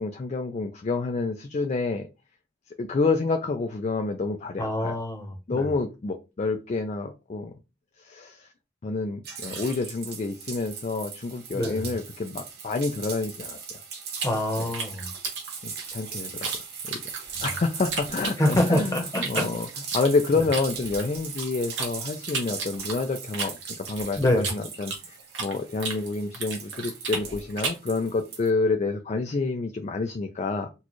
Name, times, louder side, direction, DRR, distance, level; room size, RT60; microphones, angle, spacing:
voice 1, 0.0-2.1 2.8-5.0 5.5-7.5 8.0-8.5 8.8-13.6 14.6-14.7 15.6-16.5 16.9-17.0 17.4-30.7, left 3 dB, 40° left, 0.4 m, -28 dB
voice 2, 4.6-5.6 11.5-11.8 14.2-15.1 18.4-19.5 20.3-20.4 24.2-24.5, left 1 dB, 20° left, 0.9 m, -25 dB
sound 1, 9.2-28.5, right 6 dB, 60° right, 1.0 m, -39 dB
sound 2, 14.1-16.6 16.9-18.8 19.1-21.9 22.3-25.6 25.8-27.9, right 4 dB, 80° right, 1.2 m, -33 dB
4.0 x 2.3 x 3.0 m
head